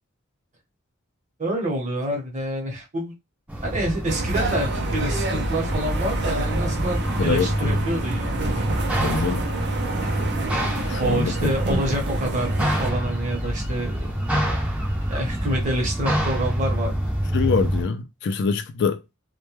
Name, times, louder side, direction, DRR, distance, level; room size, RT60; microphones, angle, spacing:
voice 1, 1.4-3.1 3.6-8.7 11.0-14.1 15.1-17.0, right 1 dB, 35° right, 0.9 m, -27 dB
sound 1, 3.5-17.8, equal, 5° right, 0.5 m, -26 dB
sound 2, 4.1-12.9, right 2 dB, 55° right, 0.5 m, -28 dB
voice 2, 7.2-7.8 9.0-9.5 10.9-11.5 17.3-19.0, left 5 dB, 55° left, 0.3 m, -25 dB
2.2 x 2.1 x 3.0 m
head